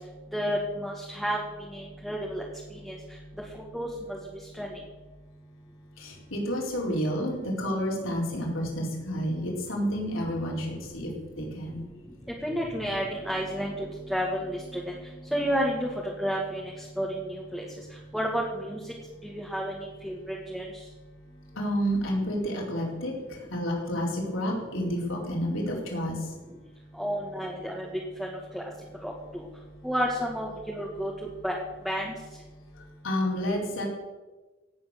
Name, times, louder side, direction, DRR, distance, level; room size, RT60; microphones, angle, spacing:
voice 1, 0.3-1.4 1.7-2.4 2.8-2.9 3.7-3.9 4.6-4.7 12.4-13.7 14.1-14.8 15.3-15.9 16.2-16.6 17.0-17.2 17.5-17.6 18.1-18.8 19.5-19.7 20.0-20.6 27.0-27.9 28.5-28.6 29.0-29.1 29.8-31.1 31.4-31.6 31.9-32.1, equal, ahead, -2 dB, 1.8 m, -30 dB
voice 2, 6.0-11.8 12.6-12.8 21.5-26.3 32.7-33.9, equal, 70° left, -2 dB, 4.6 m, -30 dB
16.5 x 8.7 x 6.8 m, 1.2 s
head